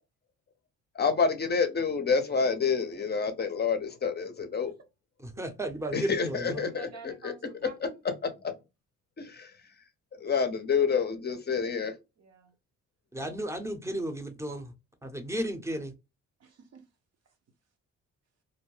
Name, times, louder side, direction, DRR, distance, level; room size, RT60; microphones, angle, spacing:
voice 1, 1.0-4.7 5.9-7.3 8.0-8.5 9.2-9.5 10.2-11.9, left 5 dB, 35° left, 0.6 m, -28 dB
voice 2, 5.2-6.7 13.1-14.7 15.0-15.9, right 1 dB, 10° right, 0.7 m, -34 dB
voice 3, 6.6-8.0 12.2-12.5 16.4-16.9, right 5 dB, 55° right, 0.8 m, -50 dB
2.6 x 2.0 x 3.1 m
cardioid pair, 90°, 30 cm